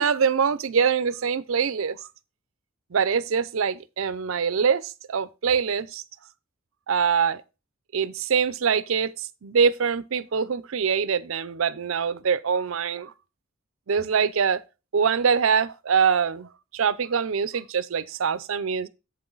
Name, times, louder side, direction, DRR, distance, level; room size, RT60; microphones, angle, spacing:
voice 1, 0.0-2.0 2.9-6.0 6.9-7.4 7.9-13.1 13.9-14.6 14.9-16.5 16.7-18.9, right 6 dB, 85° right, 0.5 m, -24 dB
7.9 x 6.9 x 3.9 m
head